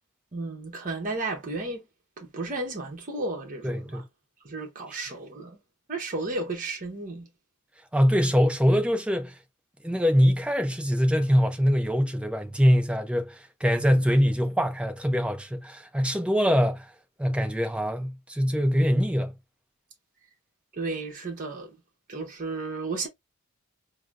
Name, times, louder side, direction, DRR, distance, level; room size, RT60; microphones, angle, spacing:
voice 1, 0.3-1.8 2.2-4.0 4.4-5.6 5.9-7.3 13.9-14.0 20.8-21.8 22.1-23.1, right 3 dB, 40° right, 0.8 m, -33 dB
voice 2, 3.6-4.0 7.9-9.4 9.8-16.9 17.2-19.3, equal, 5° right, 0.5 m, -23 dB
4.8 x 2.0 x 2.4 m
head